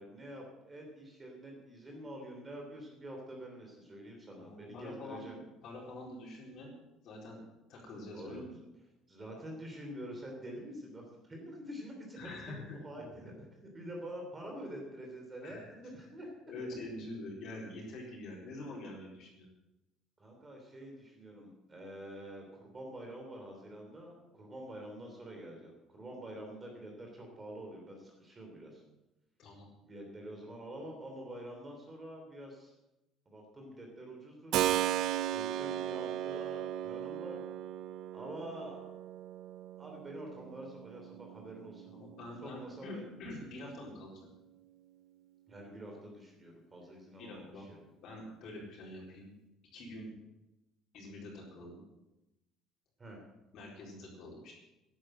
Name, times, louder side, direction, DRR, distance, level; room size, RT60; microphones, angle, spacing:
voice 1, 0.0-5.4 8.1-8.5 9.1-16.3 20.2-28.8 29.8-32.7 33.2-34.6 35.3-37.4 38.1-38.9 39.8-41.9 42.4-43.1 45.5-47.8 53.0-53.2, right 1 dB, 20° right, 1 dB, 3.1 m, -47 dB
voice 2, 4.4-5.3 5.6-6.7 7.0-7.4 7.7-8.5 12.2-13.3 15.4-15.7 16.5-19.5 29.4-29.7 41.9-44.2 47.2-47.6 48.0-49.3 49.7-50.1 50.9-51.8 53.5-54.5, left 1 dB, 55° left, -3 dB, 4.3 m, -46 dB
Keyboard (musical), 34.5-43.1, right 12 dB, 60° right, 0.4 m, -37 dB
12.5 x 11.0 x 7.8 m, 0.98 s
cardioid pair, 150°, 0 cm